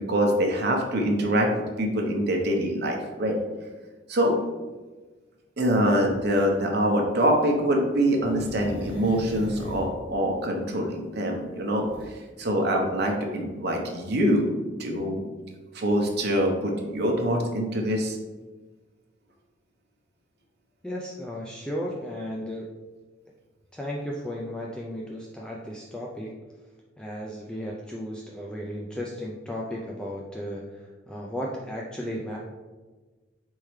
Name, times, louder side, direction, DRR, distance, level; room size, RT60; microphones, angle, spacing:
voice 1, 0.1-3.3 4.1-4.4 5.6-14.5 14.8-15.2 15.7-18.2, equal, 60° right, 1 dB, 0.8 m, -24 dB
sound 1, 6.0-6.2 8.2-9.9 11.8-12.1, equal, 35° left, 1.3 m, -39 dB
voice 2, 20.8-22.7 23.7-26.4 27.0-32.4, equal, 5° left, -3 dB, 0.3 m, -34 dB
4.2 x 3.6 x 3.2 m, 1.3 s
head